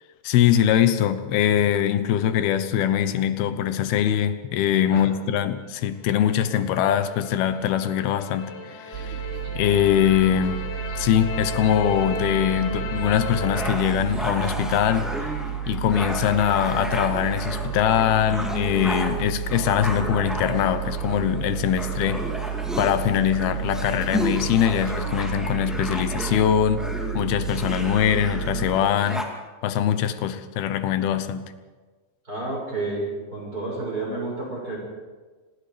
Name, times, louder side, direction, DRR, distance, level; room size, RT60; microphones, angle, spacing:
voice 1, 0.2-8.5 8.8-9.2 9.5-10.6 11.0-15.3 15.7-22.2 22.8-26.8 27.1-29.3 29.6-31.5, left 10 dB, 75° left, 11 dB, 2.9 m, -22 dB
sound 1, 6.0-13.7, left 4 dB, 55° left, 3.0 m, -35 dB
sound 2, 8.9-28.8, right 10 dB, 85° right, 2.9 m, -32 dB
sound 3, 13.5-29.2, equal, ahead, 1.0 m, -33 dB
voice 2, 32.3-34.8, right 2 dB, 20° right, -4 dB, 7.0 m, -30 dB
27.0 x 20.0 x 5.1 m, 1.4 s
omnidirectional pair, 4.8 m